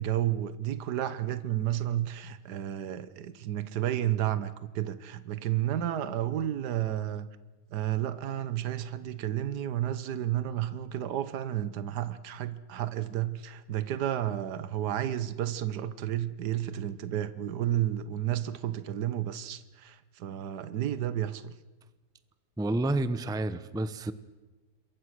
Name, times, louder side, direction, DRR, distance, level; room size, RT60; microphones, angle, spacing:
voice 1, 0.0-7.3 7.7-21.4, right 12 dB, 75° right, 14 dB, 1.6 m, -31 dB
voice 2, 22.6-24.1, right 2 dB, 5° right, 13 dB, 0.6 m, -29 dB
27.5 x 22.5 x 6.4 m, 1.2 s
omnidirectional pair, 1.8 m